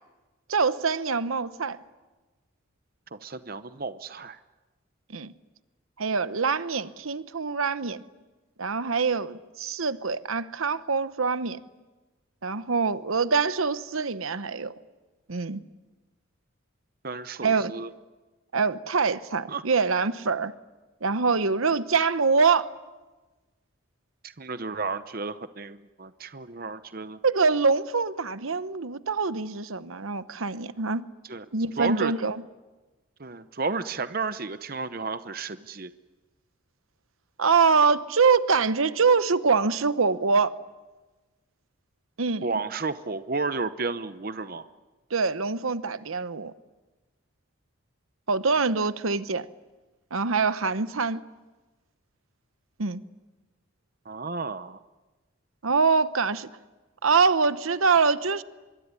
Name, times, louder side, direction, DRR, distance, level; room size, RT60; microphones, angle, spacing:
voice 1, 0.5-1.8 5.1-5.3 6.0-8.0 8.6-11.6 12.4-14.7 15.3-15.6 17.4-17.7 18.5-20.5 21.0-22.7 27.2-31.1 31.5-32.4 37.4-40.5 42.2-42.5 45.1-46.5 48.3-49.5 50.1-51.2 52.8-53.0 55.6-56.5 57.0-58.4, right 4 dB, 80° right, 0.9 m, -24 dB
voice 2, 3.1-4.4 17.0-17.9 19.5-19.6 24.4-27.2 31.3-31.4 31.8-32.1 33.2-35.9 42.4-44.7 54.1-54.8, right 4 dB, 45° right, 0.8 m, -32 dB
24.5 x 23.0 x 9.8 m
head